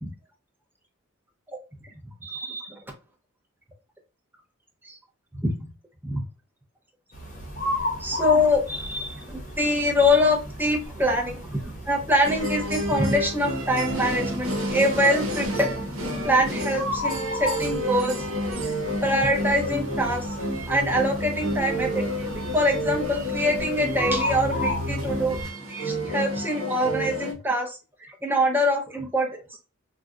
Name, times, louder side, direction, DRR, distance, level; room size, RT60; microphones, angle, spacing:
voice 1, 2.2-2.8 4.8-5.0 5.4-5.5 6.0-6.2 8.0-15.8 16.2-18.7 19.0-20.4 20.7-25.4 25.7-29.4, left 1 dB, 10° right, 0 dB, 0.7 m, -24 dB
sound 1, 7.1-25.5, left 1 dB, 35° left, 0.8 m, -34 dB
sound 2, 12.2-27.3, equal, 85° right, 0.9 m, -30 dB
2.5 x 2.2 x 3.6 m, 0.30 s
head